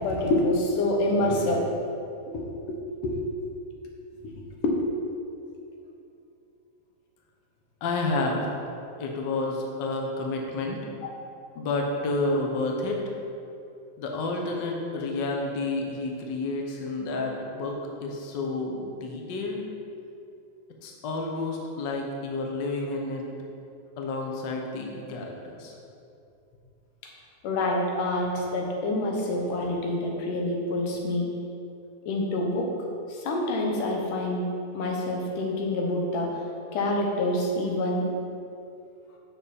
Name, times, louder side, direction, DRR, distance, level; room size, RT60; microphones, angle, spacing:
voice 1, 0.0-1.7 2.3-3.2 4.2-4.3 4.6-4.8 27.4-31.3 32.1-32.7 33.1-36.4 36.7-38.1, left 1 dB, 90° left, 0 dB, 2.8 m, -27 dB
voice 2, 7.8-8.5 9.0-10.8 11.5-13.2 14.0-19.6 20.8-23.3 24.0-25.7, left 2 dB, 60° left, 0 dB, 1.1 m, -30 dB
10.5 x 6.4 x 4.3 m, 2.6 s
omnidirectional pair, 3.5 m